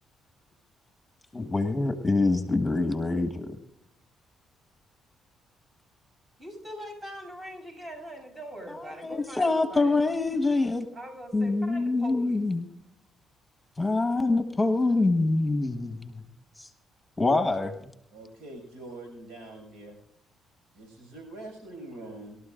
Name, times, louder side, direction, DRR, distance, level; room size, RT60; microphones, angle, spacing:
voice 1, 1.3-3.6 9.0-10.9 11.3-12.6 13.8-16.2 16.6-16.7 17.2-17.7, left 3 dB, 15° left, 8 dB, 1.4 m, -25 dB
voice 2, 6.4-10.0 10.9-12.5, right 1 dB, 30° right, 2 dB, 7.2 m, -42 dB
voice 3, 18.1-20.0 20.7-22.4, right 2 dB, 85° right, 3 dB, 6.3 m, -44 dB
23.5 x 13.0 x 2.5 m, 0.73 s
supercardioid pair, 70°, 0 cm